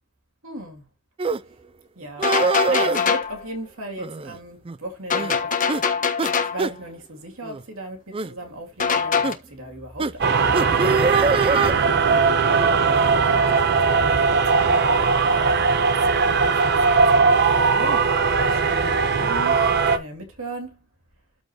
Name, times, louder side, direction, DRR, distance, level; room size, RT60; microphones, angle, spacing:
voice 1, 0.4-0.8 2.0-2.3 2.7-5.6 6.5-11.2 12.0-15.2 16.1-19.6 19.9-20.8, right 1 dB, 65° right, 2.7 m, -37 dB
sound 1, 1.2-1.4 2.2-3.0 4.0-4.4 4.7-4.8 5.1-5.4 5.7-5.8 6.2-6.3 6.6-6.7 7.4-7.6 8.1-8.3 9.2-9.4 10.0-10.1 10.5-11.7, right 4 dB, 25° right, 0.4 m, -23 dB
sound 2, 2.2-3.4 5.1-6.7 8.8-9.3, left 6 dB, 35° left, 1.3 m, -23 dB
sound 3, 10.2-20.0, right 4 dB, 50° right, 1.0 m, -19 dB
13.0 x 5.1 x 3.0 m
head